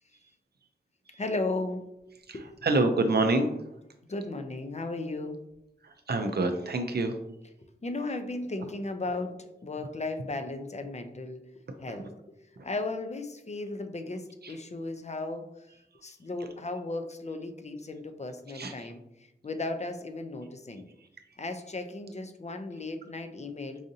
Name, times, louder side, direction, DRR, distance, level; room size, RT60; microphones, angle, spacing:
voice 1, 1.2-1.9 2.3-2.6 4.1-5.4 7.8-11.4 11.8-12.4 12.6-15.7 16.0-19.0 19.4-20.9 21.4-23.8, left 2 dB, 40° left, 7 dB, 0.5 m, -35 dB
voice 2, 2.6-3.6 5.8-7.2 11.7-12.0 14.4-14.5 18.5-18.9, right 2 dB, 65° right, 6 dB, 0.4 m, -27 dB
4.8 x 2.6 x 2.7 m, 0.85 s
wide cardioid pair, 55°, 18 cm